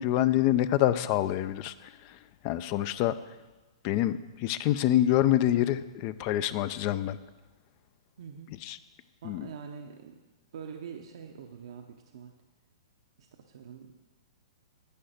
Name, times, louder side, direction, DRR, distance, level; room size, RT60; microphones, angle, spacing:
voice 1, 0.0-1.7 2.4-3.1 3.8-7.2 8.6-8.8 9.2-9.5, left 13 dB, 40° left, 14 dB, 0.5 m, -26 dB
voice 2, 8.2-8.6 9.2-10.2 10.5-12.3 13.2-13.9, right 7 dB, 65° right, 3 dB, 0.8 m, -44 dB
10.0 x 5.7 x 8.0 m, 1.2 s
hypercardioid pair, 135°, 3 cm